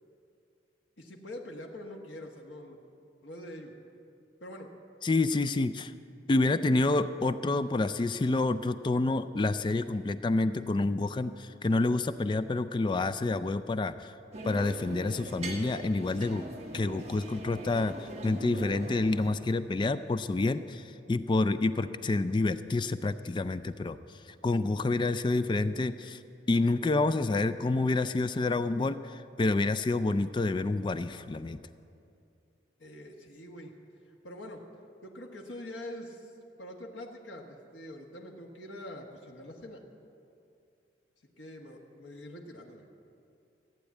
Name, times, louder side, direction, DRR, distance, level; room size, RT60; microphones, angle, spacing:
voice 1, 1.0-2.8 3.2-3.7 4.4-4.7 32.8-33.7 34.1-34.7 35.0-36.3 36.6-39.8 41.4-42.9, left 1 dB, 85° left, 1 dB, 1.4 m, -44 dB
voice 2, 5.0-5.9 6.3-14.1 14.4-16.4 16.7-24.0 24.4-26.2 26.5-31.6, left 2 dB, 25° left, 12 dB, 0.3 m, -28 dB
sound 1, 14.3-19.3, right 2 dB, 35° right, 1.4 m, -41 dB
15.0 x 9.0 x 8.3 m, 2.6 s
head